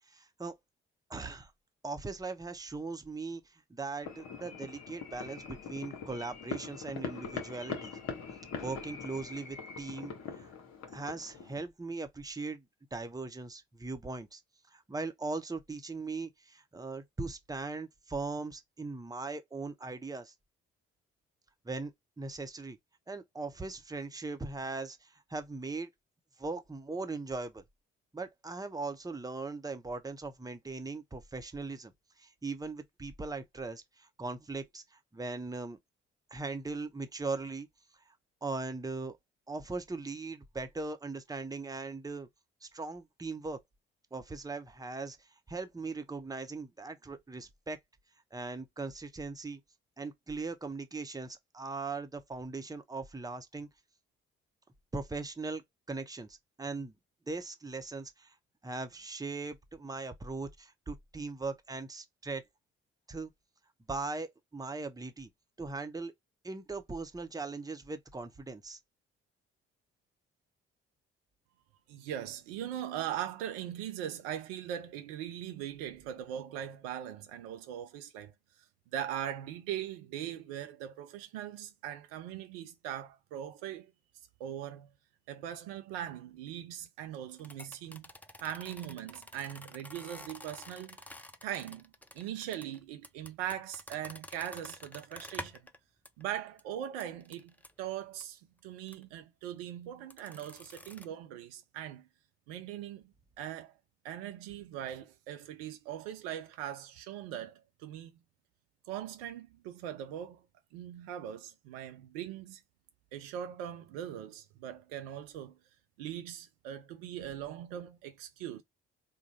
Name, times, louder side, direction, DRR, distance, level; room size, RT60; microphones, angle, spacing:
voice 1, 0.1-0.5 1.1-1.5 1.8-8.0 8.5-10.5 10.9-12.7 12.9-14.4 14.7-20.3 21.6-21.9 22.2-22.8 23.1-25.9 26.4-27.6 28.1-31.9 32.2-35.8 36.3-37.7 38.1-38.2 38.4-39.2 39.5-42.3 42.6-43.6 44.1-47.8 48.3-49.6 50.0-53.7 54.9-56.9 57.3-58.3 58.6-62.4 63.1-63.3 63.9-65.3 65.6-66.1 66.4-68.8, right 3 dB, 10° right, 0.9 m, -39 dB
sound 1, 4.0-11.6, left 5 dB, 60° left, 1.3 m, -42 dB
voice 2, 71.9-78.3 78.9-83.9 84.4-84.9 85.3-88.1 88.4-91.1 91.4-95.6 96.2-102.1 102.5-103.8 104.0-108.1 108.9-110.5 110.7-112.6 113.1-115.6 116.0-118.6, right 10 dB, 75° right, 0.7 m, -40 dB
sound 2, 87.4-95.8 96.1-96.2 96.6-96.7 97.0-97.7 98.2-98.3 98.9-99.0 100.1-101.1, left 1 dB, 5° left, 0.5 m, -48 dB
3.7 x 2.2 x 4.1 m
figure-of-eight pair, 45°, 30 cm